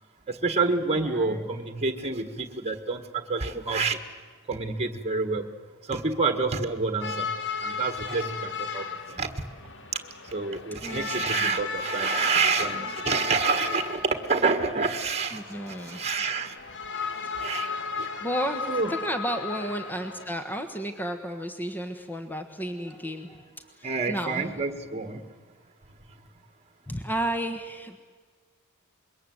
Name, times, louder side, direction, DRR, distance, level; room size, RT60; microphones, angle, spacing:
voice 1, 0.3-4.0 4.5-5.5 5.8-7.3 7.6-9.3 9.9-10.0 10.2-16.6 17.3-17.7 18.0-18.1 18.7-18.9 23.8-25.2, right 4 dB, 30° right, 7 dB, 1.6 m, -28 dB
voice 2, 0.9-1.5 10.8-11.6 15.3-16.0 18.2-23.4 23.8-24.5 26.9-28.0, right 1 dB, 10° left, 7 dB, 1.3 m, -33 dB
sound 1, 7.0-20.2, left 5 dB, 55° left, 1.7 m, -35 dB
26.0 x 22.5 x 7.9 m, 1.5 s
head